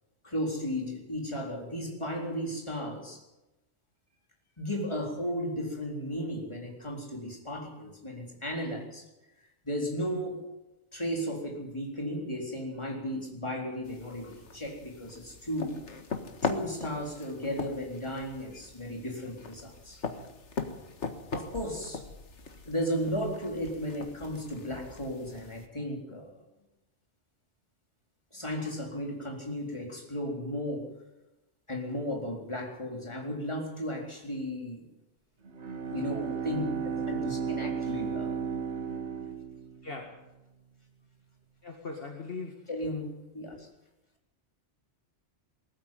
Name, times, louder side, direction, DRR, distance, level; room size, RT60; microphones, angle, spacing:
voice 1, 0.2-3.2 4.6-9.0 9.6-10.5 10.9-15.7 16.4-20.0 21.3-22.0 22.7-26.4 28.3-30.9 31.7-34.8 35.9-36.6 37.1-38.3 42.7-43.7, equal, 25° left, 0 dB, 4.1 m, -35 dB
sound 1, 13.8-25.7, left 4 dB, 80° left, 1.9 m, -40 dB
Bowed string instrument, 35.4-40.2, right 6 dB, 70° right, 2.1 m, -34 dB
voice 2, 41.6-42.5, left 3 dB, 55° left, 1 dB, 2.2 m, -39 dB
20.0 x 14.0 x 9.4 m, 0.99 s
omnidirectional pair, 1.2 m